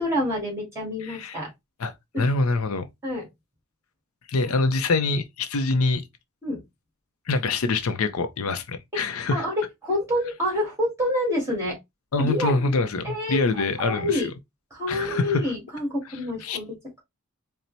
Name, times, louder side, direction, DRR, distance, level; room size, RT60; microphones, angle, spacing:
voice 1, 0.0-1.5 3.0-3.2 6.4-6.6 9.3-11.8 12.2-12.7 13.0-13.4 13.8-14.3 14.7-16.7, left 1 dB, 15° right, 2.0 m, -27 dB
voice 2, 1.0-1.4 1.8-1.9 2.2-2.9 4.3-6.0 7.3-9.5 12.1-14.3 14.9-15.4 16.1-16.6, left 3 dB, 70° left, 0.5 m, -25 dB
4.3 x 2.1 x 3.9 m
head